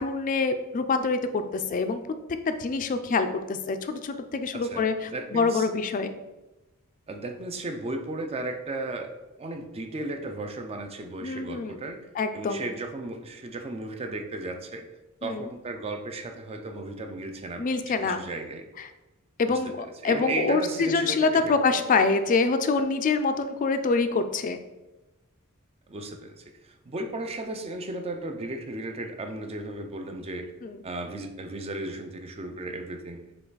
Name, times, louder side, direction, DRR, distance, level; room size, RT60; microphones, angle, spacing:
voice 1, 0.0-2.0 2.5-6.1 11.2-11.8 12.1-12.7 15.2-15.5 17.6-18.2 18.8-18.9 19.4-24.6 30.6-30.8, left 4 dB, 40° left, 9 dB, 0.3 m, -26 dB
voice 2, 4.5-5.7 7.1-9.1 9.4-12.1 12.3-14.8 15.2-18.7 19.5-19.6 20.0-21.8 25.9-30.5 30.8-33.3, right 2 dB, 30° right, 6 dB, 0.4 m, -35 dB
5.5 x 2.3 x 3.9 m, 1.0 s
head